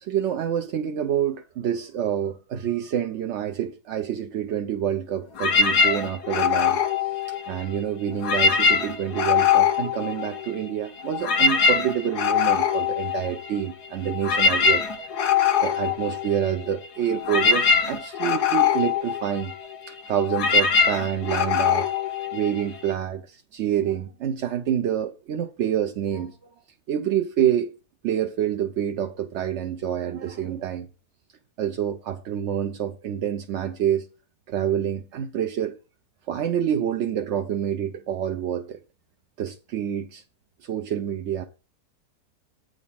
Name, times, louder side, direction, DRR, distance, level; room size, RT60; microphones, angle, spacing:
voice 1, 0.0-6.8 7.3-15.1 15.6-19.5 19.9-21.9 22.3-26.5 26.9-27.7 28.0-30.9 31.6-34.1 34.5-35.8 36.3-38.8 39.4-40.2 40.6-41.4, right 9 dB, 65° right, 0.7 m, -27 dB
sound 1, 5.3-7.8 8.1-10.7 11.0-22.9, left 6 dB, 85° left, 1.5 m, -23 dB
8.5 x 3.9 x 7.0 m
omnidirectional pair, 1.7 m